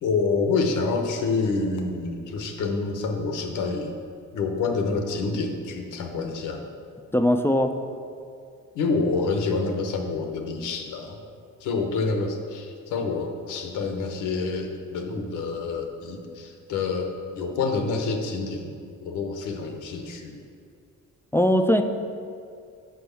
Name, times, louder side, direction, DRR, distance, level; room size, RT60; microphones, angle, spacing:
voice 1, 0.0-4.0 4.3-6.6 8.7-11.2 11.6-20.4, left 4 dB, 85° left, 4 dB, 1.0 m, -27 dB
voice 2, 7.1-7.7 21.3-21.8, equal, 10° left, 6 dB, 0.4 m, -20 dB
6.1 x 5.3 x 6.9 m, 2.3 s
cardioid pair, 90°, 30 cm